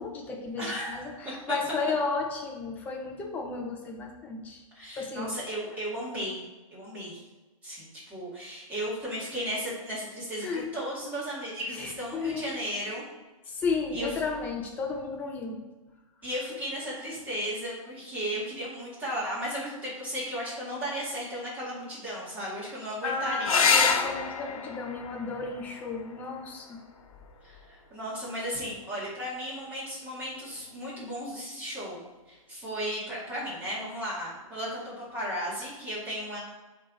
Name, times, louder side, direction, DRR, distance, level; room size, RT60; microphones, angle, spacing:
voice 1, 0.0-4.6 4.9-5.3 10.4-10.7 11.8-12.5 13.5-15.6 23.0-26.8, left 4 dB, 10° left, 1 dB, 0.6 m, -33 dB
voice 2, 0.6-1.1 1.5-1.6 4.7-6.4 6.7-7.2 7.6-13.0 13.9-14.1 16.2-23.7 27.4-32.0 32.3-36.4, equal, 10° right, -8 dB, 2.1 m, -35 dB
sound 1, 23.4-28.5 30.4-31.0 34.5-34.6 34.9-35.0, left 5 dB, 75° left, 1.0 m, -29 dB
8.3 x 3.4 x 3.9 m, 1.2 s
hypercardioid pair, 165°, 18 cm